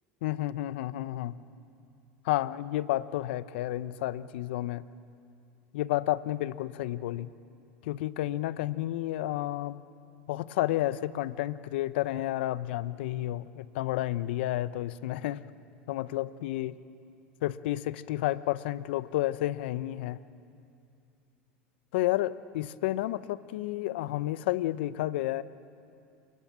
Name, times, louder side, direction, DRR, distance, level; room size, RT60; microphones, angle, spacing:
voice 1, 0.2-1.4 2.2-4.8 5.7-7.3 7.8-9.8 10.3-15.4 15.9-16.8 17.4-20.2 21.9-25.4, left 15 dB, 75° left, 16 dB, 0.8 m, -31 dB
28.5 x 19.5 x 7.4 m, 2.5 s
hypercardioid pair, 95°, 6 cm